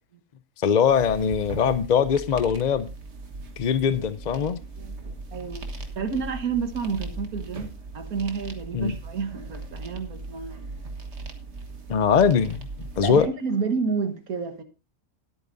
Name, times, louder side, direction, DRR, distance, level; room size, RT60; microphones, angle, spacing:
voice 1, 0.6-2.9 3.6-4.6 8.7-8.9 11.9-12.6 13.0-13.3, left 7 dB, 55° left, 0.5 m, -21 dB
sound 1, 0.8-13.3, right 3 dB, 50° right, 1.8 m, -39 dB
voice 2, 5.3-5.6 6.0-7.7 7.9-10.8 13.0-14.6, right 5 dB, 85° right, 1.8 m, -29 dB
19.5 x 8.6 x 2.6 m
omnidirectional pair, 1.5 m